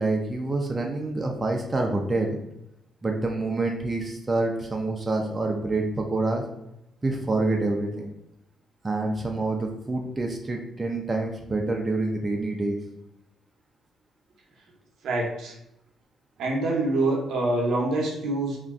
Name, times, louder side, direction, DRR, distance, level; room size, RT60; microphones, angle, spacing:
voice 1, 0.0-2.4 3.0-6.4 7.0-8.1 8.8-12.8, right 2 dB, 25° right, 1 dB, 0.4 m, -27 dB
voice 2, 15.0-15.6 16.4-18.6, right 2 dB, 75° right, 0 dB, 0.7 m, -25 dB
2.5 x 2.2 x 3.5 m, 0.83 s
cardioid pair, 90°, 0 cm